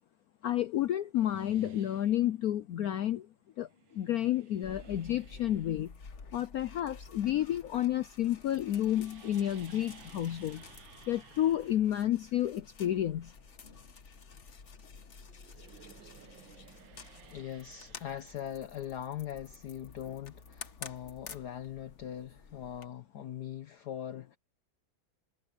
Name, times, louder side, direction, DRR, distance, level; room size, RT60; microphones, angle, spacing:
voice 1, 0.4-3.3 3.6-5.9 6.3-10.6 11.1-13.3, left 12 dB, 80° left, 0.8 m, -30 dB
sound 1, 1.1-2.4 3.7-7.9 8.2-14.8 15.1-18.9, right 9 dB, 70° right, 1.8 m, -57 dB
sound 2, 4.6-22.9, left 5 dB, 40° left, 1.4 m, -51 dB
voice 2, 17.2-24.4, left 10 dB, 60° left, 1.4 m, -41 dB
omnidirectional pair, 2.2 m